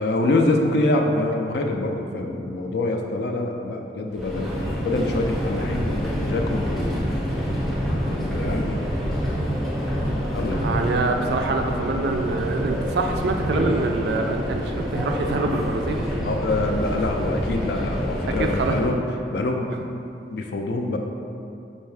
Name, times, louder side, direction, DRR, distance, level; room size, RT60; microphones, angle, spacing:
voice 1, 0.0-4.5 4.8-7.0 8.1-8.9 10.3-10.6 16.2-19.0 19.3-21.0, left 2 dB, 65° left, 3 dB, 0.4 m, -25 dB
Subway metro underground, 4.1-19.0, equal, ahead, 0.5 m, -27 dB
voice 2, 10.6-16.0 18.4-18.8, right 3 dB, 65° right, 4 dB, 0.3 m, -25 dB
4.4 x 2.7 x 3.2 m, 2.6 s
head